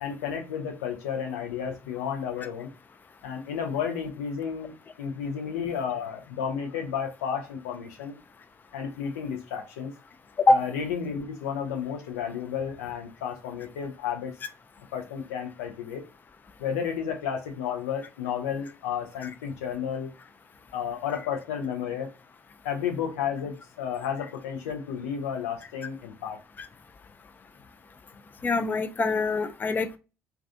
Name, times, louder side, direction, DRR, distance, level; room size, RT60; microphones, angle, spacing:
voice 1, 0.0-2.7 3.2-8.2 8.7-9.9 10.5-14.3 14.9-16.0 16.6-20.1 20.7-22.1 22.6-26.4, left 7 dB, 80° left, 4 dB, 0.5 m, -32 dB
voice 2, 28.4-30.0, left 3 dB, 25° left, 9 dB, 0.3 m, -23 dB
2.3 x 2.3 x 2.5 m, 0.30 s
hypercardioid pair, 55°, 8 cm